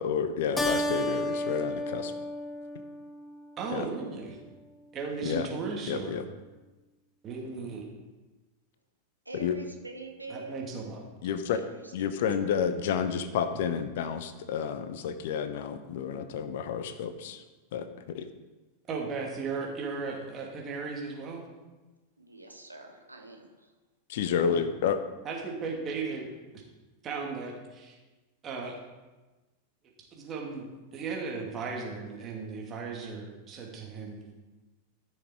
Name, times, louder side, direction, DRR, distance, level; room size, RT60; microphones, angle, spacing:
voice 1, 0.0-2.1 3.7-3.9 5.2-5.5 5.9-6.2 9.3-9.6 11.2-11.6 11.9-17.4 17.7-18.3 24.1-25.0, left 7 dB, 55° left, 11 dB, 0.8 m, -30 dB
Keyboard (musical), 0.6-3.5, left 1 dB, 10° left, 0.7 m, -32 dB
voice 2, 3.6-4.4 4.9-6.2 7.2-7.8 10.3-11.0 18.9-21.4 24.5-24.6 25.2-26.3 27.0-28.0 28.4-28.8 30.2-30.7 30.9-34.2, right 4 dB, 30° right, -1 dB, 2.7 m, -36 dB
voice 3, 9.2-10.7 11.5-12.1 22.2-23.7, right 3 dB, 85° right, 2 dB, 1.4 m, -45 dB
14.0 x 6.5 x 4.7 m, 1.2 s
figure-of-eight pair, 90°, 0 cm